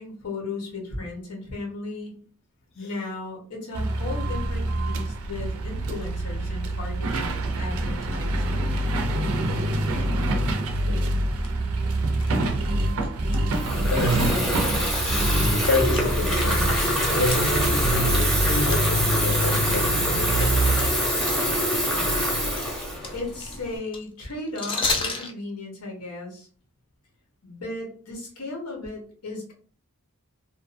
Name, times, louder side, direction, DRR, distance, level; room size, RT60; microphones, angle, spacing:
voice 1, 0.0-2.2 2.7-8.8 21.9-26.5 27.4-29.5, left 2 dB, 90° left, 0.9 m, -36 dB
sound 1, 3.7-20.9, right 1 dB, 75° right, 0.4 m, -26 dB
sound 2, 9.5-9.6 10.0-10.3 10.8-10.9 11.3-11.5 12.2-13.6 13.9-14.0 14.6-14.7 15.0-16.7 17.2-18.4 18.7-18.8 19.2-21.9 22.2-25.3, left 3 dB, 20° left, 0.3 m, -32 dB
voice 2, 10.8-11.4 13.5-14.6 15.4-21.0, left 2 dB, 55° left, 0.7 m, -29 dB
Water tap faucet / Fill (with liquid), 13.5-23.8, equal, ahead, 0.7 m, -25 dB
2.6 x 2.2 x 2.5 m
head